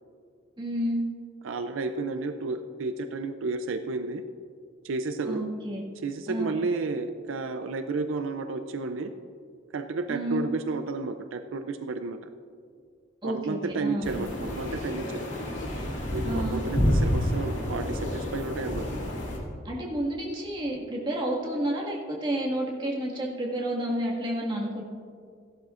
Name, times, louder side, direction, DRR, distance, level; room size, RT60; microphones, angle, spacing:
voice 1, 0.6-1.0 5.2-5.8 6.3-6.5 10.1-10.4 13.2-14.2 16.2-16.6 19.6-24.8, right 1 dB, 25° right, -3 dB, 1.8 m, -30 dB
voice 2, 1.4-4.2 4.8-5.4 6.0-9.1 9.7-12.2 13.2-15.3 16.1-18.9, right 3 dB, 80° right, 8 dB, 0.5 m, -32 dB
sound 1, 14.0-19.4, left 1 dB, 65° left, 2.4 m, -29 dB
16.5 x 11.5 x 2.5 m, 2.2 s
head